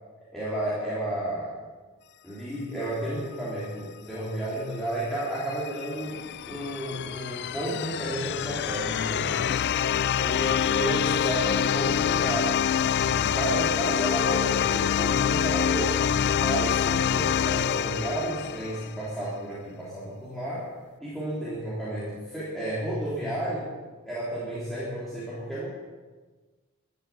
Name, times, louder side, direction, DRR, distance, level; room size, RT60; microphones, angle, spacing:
voice 1, 0.3-1.5 2.2-9.3 10.2-12.6 12.9-16.0 16.3-20.7 21.0-23.7 24.0-25.7, right 1 dB, ahead, -9 dB, 3.4 m, -32 dB
sound 1, 5.2-19.0, left 8 dB, 50° left, 0.4 m, -26 dB
14.0 x 9.6 x 8.6 m, 1.4 s
head